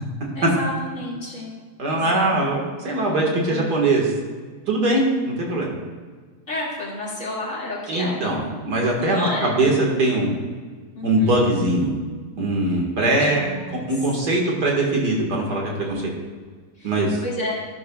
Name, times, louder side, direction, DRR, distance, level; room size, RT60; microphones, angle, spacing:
voice 1, 0.3-1.5 1.9-2.5 3.5-3.7 6.5-8.2 9.0-9.5 11.0-11.4 13.2-13.9 15.8-16.2 16.8-16.9 17.2-17.5, left 2 dB, 40° left, -5 dB, 2.7 m, -31 dB
voice 2, 1.8-4.1 4.7-5.7 7.9-10.3 11.0-11.9 12.4-16.1 16.8-17.2, right 2 dB, 60° right, -1 dB, 2.3 m, -21 dB
13.0 x 11.5 x 2.4 m, 1.5 s
omnidirectional pair, 2.0 m